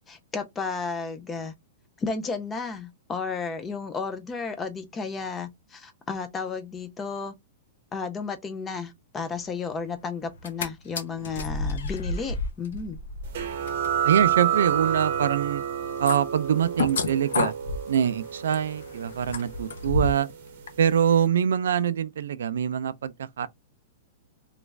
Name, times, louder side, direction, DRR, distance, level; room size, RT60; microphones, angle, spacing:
voice 1, 0.1-1.5 2.0-7.3 7.9-13.0, left 5 dB, 10° left, 0.3 m, -33 dB
sound 1, 10.3-10.7 10.9-20.3 20.7-20.8, left 3 dB, 90° left, 0.6 m, -32 dB
sound 2, 13.3-20.6, right 9 dB, 45° right, 0.7 m, -29 dB
voice 2, 14.0-15.6 16.0-17.5 17.9-20.3 20.8-23.5, right 9 dB, 85° right, 0.4 m, -24 dB
3.0 x 2.4 x 3.2 m
supercardioid pair, 180°, 0 cm